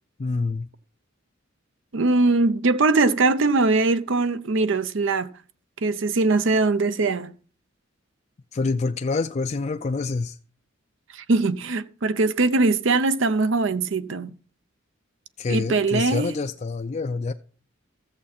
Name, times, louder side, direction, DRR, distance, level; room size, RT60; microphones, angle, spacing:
voice 1, 0.2-0.7 8.5-10.4 15.4-17.3, left 3 dB, 35° left, 0.4 m, -26 dB
voice 2, 1.9-5.3 5.8-7.3 11.1-14.3 15.5-16.3, right 3 dB, 65° right, 0.6 m, -21 dB
14.0 x 7.4 x 4.2 m
head